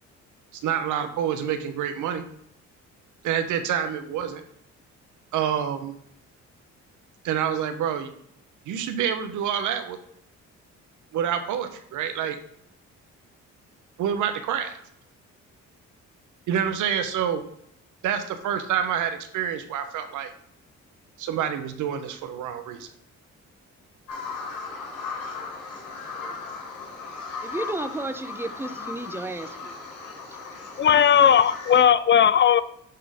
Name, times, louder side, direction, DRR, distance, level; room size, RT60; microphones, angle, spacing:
voice 1, 0.6-2.2 3.2-4.4 5.3-6.0 7.2-8.1 8.7-10.0 11.1-12.4 14.0-14.8 16.5-17.4 18.0-20.3 21.2-22.9, right 9 dB, 85° right, 9 dB, 0.9 m, -27 dB
Bird vocalization bird call bird song, 24.1-31.8, left 4 dB, 75° left, 3.2 m, -37 dB
voice 2, 27.4-29.8, right 2 dB, 10° right, 10 dB, 0.6 m, -32 dB
voice 3, 30.8-32.6, left 8 dB, 40° left, 15 dB, 0.4 m, -17 dB
7.8 x 3.8 x 4.9 m, 0.70 s
cardioid pair, 90°, 30 cm